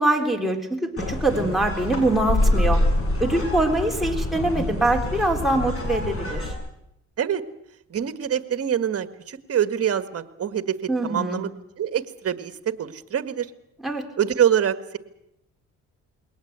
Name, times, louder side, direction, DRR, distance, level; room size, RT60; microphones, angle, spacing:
voice 1, 0.0-2.8 3.2-6.5 10.9-11.4 13.8-14.0, right 2 dB, ahead, 5 dB, 3.8 m, -23 dB
sound 1, 1.0-6.5, left 1 dB, 50° left, 7.3 m, -25 dB
voice 2, 7.9-10.8 11.0-11.5 11.8-12.5 12.8-13.5 14.2-15.0, right 9 dB, 50° right, 11 dB, 1.7 m, -25 dB
21.5 x 18.5 x 8.2 m, 0.79 s
cardioid pair, 90°, 30 cm